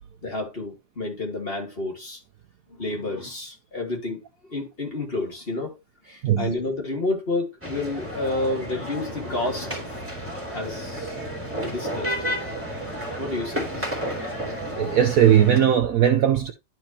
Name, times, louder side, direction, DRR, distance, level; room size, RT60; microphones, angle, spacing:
voice 1, 0.2-2.2 2.7-4.2 4.5-5.8 6.0-10.0 10.5-11.2 11.6-12.1 13.2-13.9, left 2 dB, 30° left, 2.5 m, -30 dB
sound 1, 7.6-15.6, equal, 5° right, 2.7 m, -32 dB
voice 2, 14.7-16.5, right 10 dB, 65° right, 1.0 m, -18 dB
12.0 x 4.6 x 2.8 m
omnidirectional pair, 1.9 m